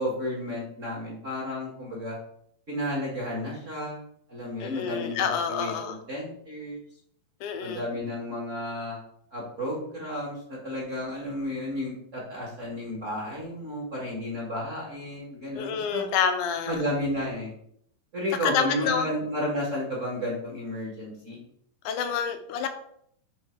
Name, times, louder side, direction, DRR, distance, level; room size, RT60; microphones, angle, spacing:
voice 1, 0.0-2.2 2.7-4.0 4.3-6.8 7.6-9.0 9.3-16.1 16.7-17.5 18.1-21.4, left 1 dB, 35° right, -3 dB, 1.3 m, -32 dB
voice 2, 4.6-6.0 7.4-7.9 15.5-16.8 18.4-19.1 21.9-22.7, left 7 dB, 85° left, 7 dB, 2.3 m, -28 dB
9.5 x 3.2 x 4.4 m, 0.68 s
omnidirectional pair, 3.6 m